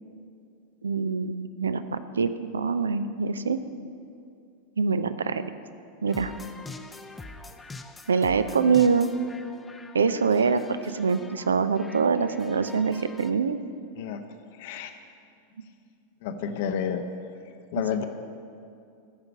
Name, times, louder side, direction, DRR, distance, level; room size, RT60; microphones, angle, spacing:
voice 1, 0.8-3.6 4.8-5.4 6.0-6.3 8.1-9.1 9.9-13.6, right 5 dB, 70° right, 12 dB, 0.5 m, -24 dB
sound 1, 6.1-13.3, left 3 dB, 10° left, 0.6 m, -45 dB
voice 2, 14.5-15.0 16.2-17.0 17.7-18.0, left 8 dB, 50° left, 7 dB, 0.8 m, -30 dB
14.5 x 5.9 x 8.5 m, 2.4 s
figure-of-eight pair, 90°, 0 cm